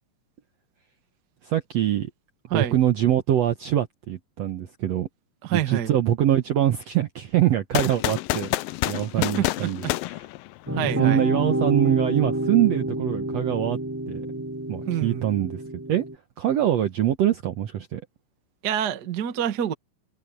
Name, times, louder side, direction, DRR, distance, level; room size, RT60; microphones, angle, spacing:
voice 1, 1.4-2.1 2.5-5.1 5.5-8.5 8.9-9.8 10.8-13.8 14.1-14.3 14.7-15.6 15.9-16.0 16.4-18.0, right 11 dB, 70° right, 1.7 m, -23 dB
voice 2, 5.4-5.9 9.2-10.0 10.7-11.2 14.8-15.2 18.6-19.7, right 10 dB, 50° right, 1.2 m, -27 dB
sound 1, 7.7-10.9, left 18 dB, 80° left, 2.4 m, -28 dB
sound 2, 10.7-16.2, right 1 dB, 5° right, 3.1 m, -28 dB
omnidirectional pair, 4.1 m